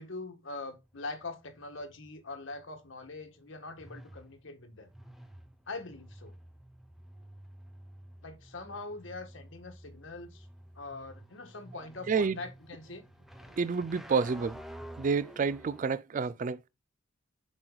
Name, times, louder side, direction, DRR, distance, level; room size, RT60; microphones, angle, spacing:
voice 1, 0.0-4.9 5.7-6.3 8.2-10.5 10.7-13.0 16.3-16.4, left 3 dB, 70° left, 1.4 m, -43 dB
sound 1, 0.8-15.9, equal, ahead, 0.8 m, -51 dB
voice 2, 12.1-12.4 13.6-14.6 15.0-16.7, right 5 dB, 40° right, 0.3 m, -29 dB
7.7 x 6.1 x 2.3 m
head